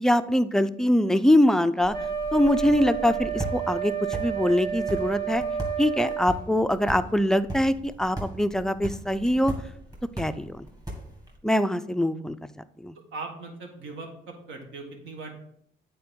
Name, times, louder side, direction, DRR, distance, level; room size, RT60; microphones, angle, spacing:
voice 1, 0.0-2.0 2.3-3.9 4.2-5.4 5.8-9.5 10.2-10.7 11.4-12.4 12.8-12.9, left 1 dB, 5° left, 11 dB, 0.3 m, -23 dB
sound 1, 1.8-11.4, right 1 dB, 20° right, 1.8 m, -39 dB
Wind instrument woodwind instrument, 1.9-6.3, right 8 dB, 50° right, 1.2 m, -30 dB
voice 2, 13.1-15.3, right 3 dB, 75° right, 3 dB, 1.6 m, -39 dB
8.6 x 4.2 x 3.7 m, 0.70 s
cardioid pair, 90°, 20 cm